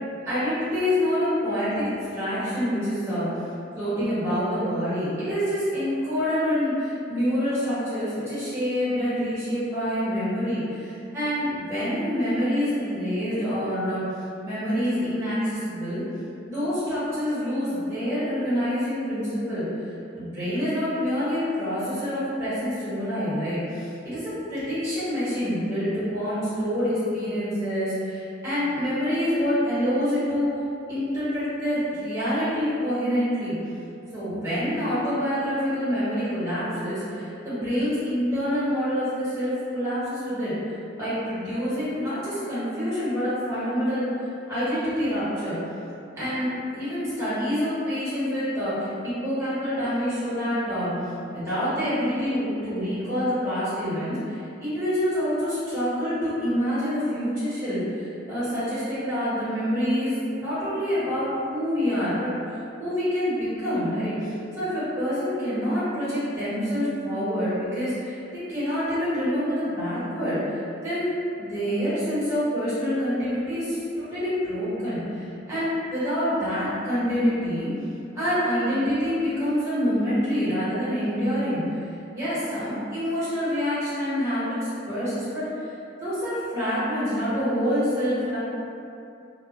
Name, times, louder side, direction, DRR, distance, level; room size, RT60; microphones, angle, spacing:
voice 1, 0.2-3.3 3.8-14.0 14.4-16.0 16.5-19.6 20.1-30.5 30.9-33.5 34.1-40.5 41.0-44.1 44.5-45.6 46.2-50.9 51.3-62.3 62.8-71.1 71.4-77.7 78.1-81.6 82.1-85.5 86.0-88.4, equal, 15° right, -13 dB, 1.0 m, -26 dB
2.1 x 2.0 x 2.8 m, 2.6 s
head